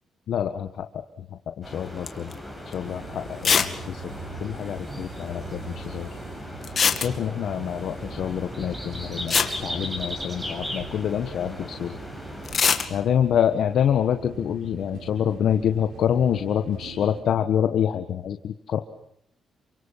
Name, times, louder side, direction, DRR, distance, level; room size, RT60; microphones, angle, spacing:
voice 1, 0.3-1.0 1.5-2.3 2.7-4.0 4.4-6.1 7.0-9.3 9.6-11.9 12.9-18.8, left 9 dB, 70° left, 7 dB, 1.6 m, -26 dB
sound 1, 1.6-12.6, equal, 10° right, 7.6 m, -37 dB
sound 2, 2.1-2.3 2.7-2.8 3.4-3.8 4.0-4.1 4.3-4.4 6.6-7.5 8.9-9.0 9.3-10.5 12.4-12.9, left 6 dB, 45° left, 2.4 m, -22 dB
sound 3, 2.8-17.2, right 4 dB, 75° right, 4.9 m, -43 dB
28.5 x 25.0 x 7.5 m, 0.72 s
cardioid pair, 120°, 0 cm